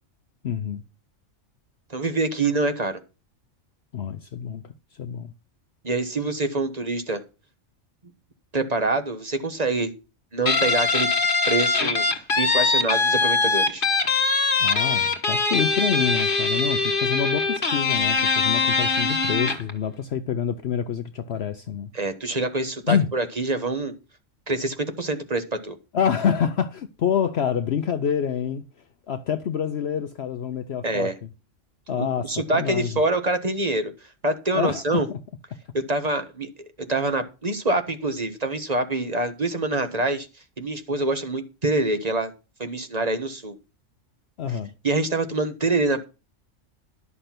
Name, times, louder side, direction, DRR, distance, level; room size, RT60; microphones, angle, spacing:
voice 1, 0.4-0.8 3.9-5.3 14.6-21.9 22.9-23.1 25.9-28.6 29.1-31.3 31.9-33.0 34.5-35.2 44.4-44.7, left 8 dB, 60° left, 0.9 m, -27 dB
voice 2, 1.9-3.0 5.8-7.2 8.5-9.9 10.3-11.1 11.5-13.8 21.9-23.9 24.5-25.8 30.8-31.1 31.9-33.9 34.2-35.1 35.7-36.5 36.8-40.3 40.6-42.3 42.6-43.5 44.8-46.0, right 2 dB, 35° right, 1.3 m, -25 dB
Guitar, 10.5-19.7, left 4 dB, 45° left, 1.6 m, -22 dB
11.0 x 6.6 x 5.9 m
omnidirectional pair, 1.3 m